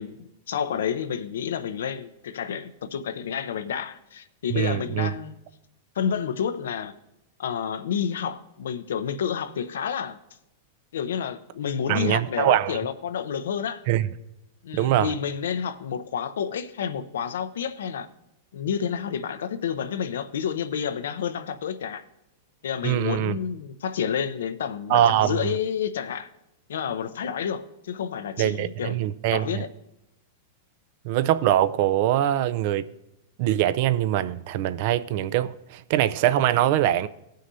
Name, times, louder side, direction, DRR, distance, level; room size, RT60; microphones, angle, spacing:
voice 1, 0.0-5.4 6.0-6.9 7.4-10.2 10.9-13.8 14.6-18.1 18.5-22.0 22.6-26.3 26.7-28.9 29.3-29.7, left 8 dB, 80° left, 0.6 m, -29 dB
voice 2, 4.5-5.1 11.9-12.8 13.9-14.1 14.7-15.1 22.8-23.3 24.9-25.6 28.4-29.6 31.0-32.8 33.4-37.1, right 12 dB, 55° right, 0.5 m, -23 dB
18.5 x 6.4 x 2.7 m
hypercardioid pair, 120°, 0 cm